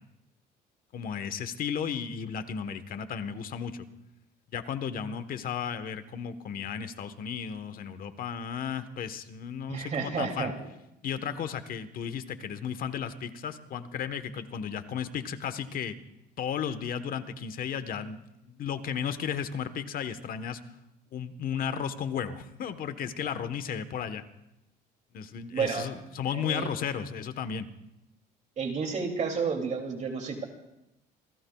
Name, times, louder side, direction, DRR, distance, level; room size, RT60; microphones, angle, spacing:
voice 1, 0.9-3.9 4.5-10.5 11.0-16.0 16.4-20.6 21.1-24.2 25.1-27.7, left 7 dB, 60° left, 11 dB, 1.2 m, -34 dB
voice 2, 9.7-10.6 25.5-26.0 26.3-26.7 28.6-30.4, right 5 dB, 45° right, 3 dB, 2.7 m, -31 dB
28.5 x 18.0 x 2.4 m, 0.87 s
cardioid pair, 110°, 17 cm